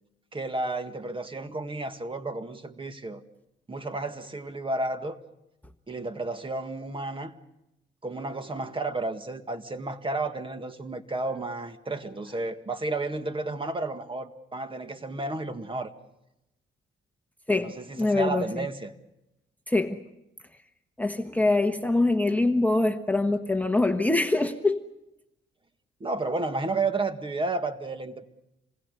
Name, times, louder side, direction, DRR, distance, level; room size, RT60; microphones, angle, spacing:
voice 1, 0.3-3.2 3.7-5.2 5.9-7.3 8.0-15.9 17.6-18.9 26.0-28.3, right 2 dB, 25° right, 1.9 m, -32 dB
voice 2, 17.5-18.7 19.7-20.0 21.0-24.8, left 2 dB, 10° left, 1.2 m, -24 dB
27.5 x 20.5 x 6.8 m
cardioid pair, 90°, 20 cm